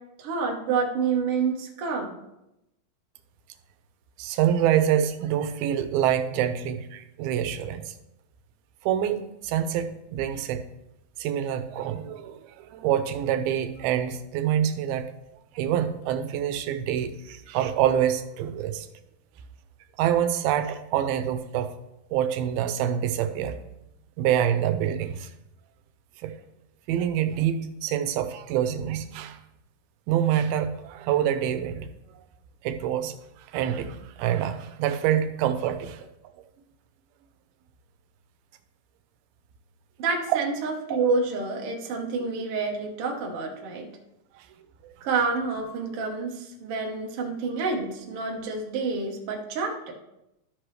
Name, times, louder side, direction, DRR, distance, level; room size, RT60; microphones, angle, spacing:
voice 1, 0.2-2.2 40.0-43.9 45.0-49.9, right 4 dB, 65° right, 1 dB, 1.5 m, -28 dB
voice 2, 4.2-7.9 8.8-10.6 11.2-15.1 15.6-18.9 20.0-21.7 22.1-23.6 24.2-25.3 26.2-26.3 26.9-29.4 30.1-31.9 32.6-33.2 33.5-36.0 40.3-40.4 44.4-44.5 44.8-44.9, right 10 dB, 90° right, 9 dB, 2.5 m, -26 dB
12.5 x 6.1 x 3.2 m, 0.88 s
omnidirectional pair, 4.2 m